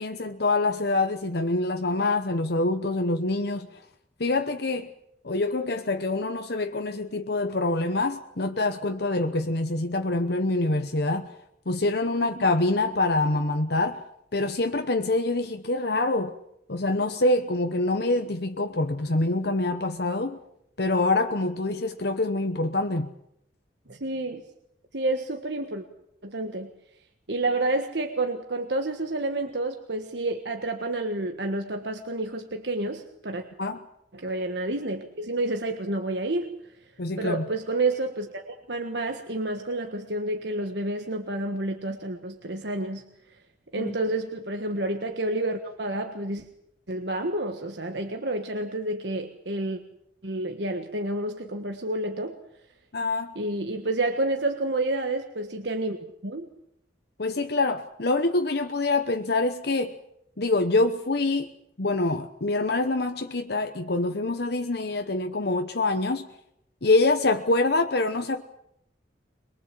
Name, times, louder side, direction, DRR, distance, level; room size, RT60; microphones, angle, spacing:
voice 1, 0.0-3.7 4.2-4.9 5.2-11.3 11.7-14.0 14.3-16.3 16.7-20.4 20.8-23.1 33.6-33.8 37.0-37.4 43.8-43.9 52.9-53.3 57.2-59.9 60.4-61.5 61.8-66.3 66.8-68.4, left 2 dB, 60° left, 1.0 m, -25 dB
voice 2, 23.9-24.4 24.9-25.8 26.2-26.7 27.3-33.4 34.1-36.5 37.2-43.0 43.7-46.4 46.9-49.8 50.2-52.3 53.3-56.5, right 2 dB, 65° right, 1.6 m, -29 dB
23.0 x 22.5 x 7.6 m
head